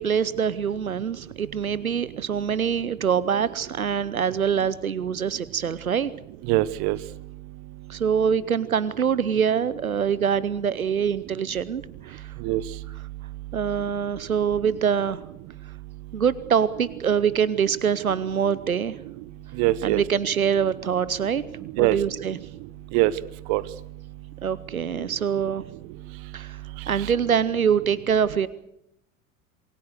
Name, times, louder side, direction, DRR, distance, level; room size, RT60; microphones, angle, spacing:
voice 1, 0.0-6.1 7.9-12.3 13.5-15.2 16.1-19.0 19.8-21.4 21.8-22.4 24.4-25.6 26.3-26.6 26.9-28.5, right 7 dB, 85° right, 18 dB, 0.8 m, -24 dB
voice 2, 6.5-7.0 12.4-12.6 19.6-20.0 21.8-22.0 22.9-23.1 23.5-23.6, right 18 dB, 50° right, 18 dB, 1.2 m, -21 dB
27.5 x 21.0 x 6.6 m, 0.81 s
figure-of-eight pair, 75°, 41 cm